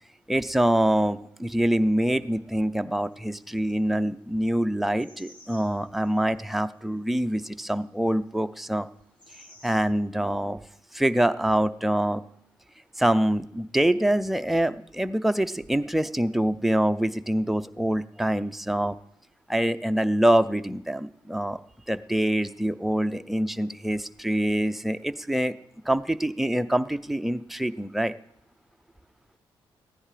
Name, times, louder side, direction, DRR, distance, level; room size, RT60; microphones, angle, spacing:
voice 1, 0.3-8.9 9.6-10.6 10.9-12.2 13.0-18.9 19.5-21.6 21.9-25.5 25.8-28.1, right 1 dB, ahead, 9 dB, 0.5 m, -25 dB
sound 1, 3.1-3.8 5.0-6.5 9.0-9.8, left 1 dB, 60° left, 3.4 m, -53 dB
15.0 x 10.0 x 5.0 m, 0.75 s
cardioid pair, 105°, 9 cm